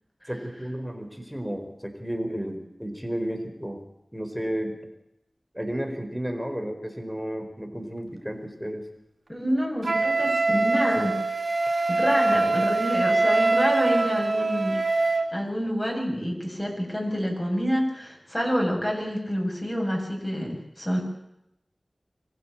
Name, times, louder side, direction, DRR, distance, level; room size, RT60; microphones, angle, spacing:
voice 1, 0.3-3.8 4.1-4.8 5.5-8.8, equal, 5° right, 5 dB, 4.5 m, -32 dB
voice 2, 9.3-11.2 11.9-21.0, equal, 15° left, 0 dB, 7.7 m, -28 dB
Wind instrument woodwind instrument, 9.8-15.3, right 3 dB, 75° right, 2.2 m, -23 dB
24.5 x 15.5 x 8.8 m, 0.83 s
wide cardioid pair, 50°, 0 cm